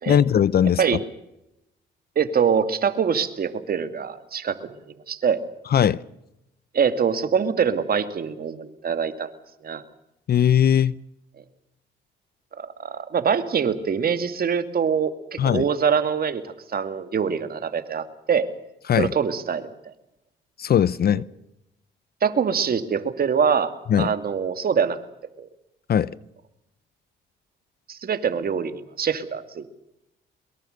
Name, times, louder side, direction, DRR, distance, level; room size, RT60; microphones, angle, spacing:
voice 1, 0.1-0.8 5.7-6.0 10.3-10.9 15.4-15.6 18.9-19.1 20.6-21.2 23.9-24.1 25.9-26.1, left 9 dB, 50° left, 0.7 m, -19 dB
voice 2, 2.2-4.7 5.1-5.4 6.7-9.3 9.6-9.8 12.8-18.5 19.0-19.7 22.2-25.0 25.4-25.5 27.9-29.6, right 6 dB, 50° right, 2.5 m, -24 dB
23.0 x 22.5 x 6.7 m
cardioid pair, 90°, 20 cm